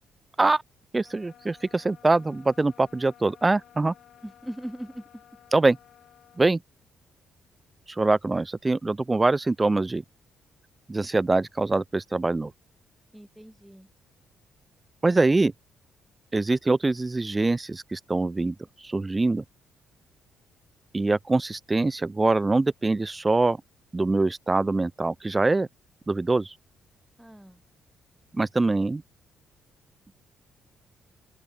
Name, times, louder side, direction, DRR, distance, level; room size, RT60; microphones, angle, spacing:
voice 1, 0.9-3.9 5.5-5.8 6.4-6.6 8.0-10.0 10.9-12.5 15.0-15.5 16.3-18.5 18.8-19.4 20.9-23.6 23.9-25.7 26.1-26.5 28.3-29.0, right 3 dB, 20° right, 0.3 m, -23 dB
sound 1, 1.0-6.6, left 10 dB, 70° left, 6.7 m, -55 dB
voice 2, 4.2-5.2 13.1-13.9 27.2-27.6, equal, 5° right, 2.1 m, -40 dB
open air
cardioid pair, 90°, 0 cm